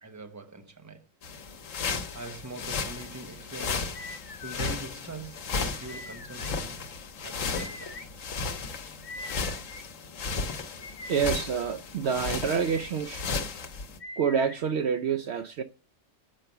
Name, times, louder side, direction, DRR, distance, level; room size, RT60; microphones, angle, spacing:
voice 1, 0.0-1.0 2.1-4.1 4.4-6.9 7.2-8.1 10.6-10.7 12.8-12.9, right 2 dB, 15° right, 1.0 m, -43 dB
sound 1, 1.2-14.0, left 4 dB, 85° left, 1.4 m, -35 dB
sound 2, 3.9-4.7 5.9-6.5 7.5-8.0 9.0-9.8 10.8-11.4 12.4-12.9 14.0-14.6, left 2 dB, 40° left, 1.2 m, -43 dB
voice 2, 11.1-13.3 14.2-15.6, right 7 dB, 65° right, 0.8 m, -27 dB
7.7 x 5.7 x 6.6 m
omnidirectional pair, 1.3 m